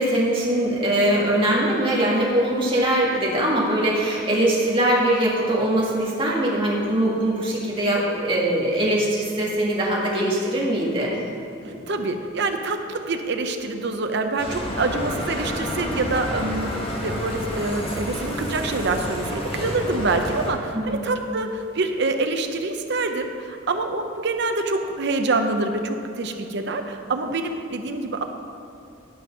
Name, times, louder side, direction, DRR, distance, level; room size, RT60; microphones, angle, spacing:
voice 1, 0.0-11.2 11.6-11.8 20.7-21.0, right 1 dB, 25° right, -5 dB, 1.8 m, -22 dB
voice 2, 11.6-28.2, right 3 dB, 55° right, 6 dB, 0.7 m, -26 dB
Bicycle, 14.4-20.5, equal, 25° left, 1.3 m, -29 dB
11.0 x 5.3 x 5.4 m, 2.7 s
head